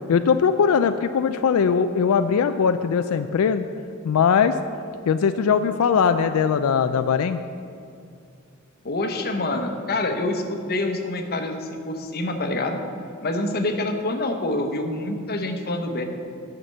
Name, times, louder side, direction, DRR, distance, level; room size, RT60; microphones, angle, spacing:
voice 1, 0.1-3.7 4.0-4.6 5.1-7.4, left 6 dB, 90° left, 9 dB, 0.4 m, -20 dB
voice 2, 8.8-12.8 13.2-16.0, left 2 dB, 45° left, 5 dB, 0.9 m, -26 dB
9.4 x 5.9 x 7.7 m, 2.5 s
head